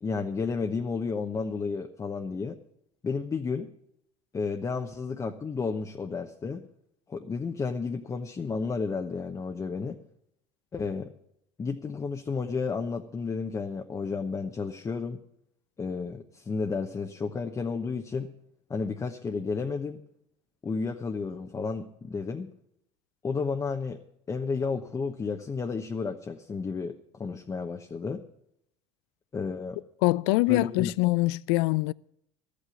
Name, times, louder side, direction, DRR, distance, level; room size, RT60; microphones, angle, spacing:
voice 1, 0.0-2.6 3.0-3.7 4.3-6.6 7.1-10.0 10.7-11.1 11.6-15.2 15.8-18.3 18.7-20.0 20.6-22.5 23.2-24.0 24.3-28.2 29.3-29.8 30.5-30.9, left 4 dB, 25° left, 1.0 m, -32 dB
voice 2, 30.0-31.9, left 21 dB, 75° left, 0.4 m, -24 dB
13.0 x 8.5 x 7.0 m
supercardioid pair, 95°, 14 cm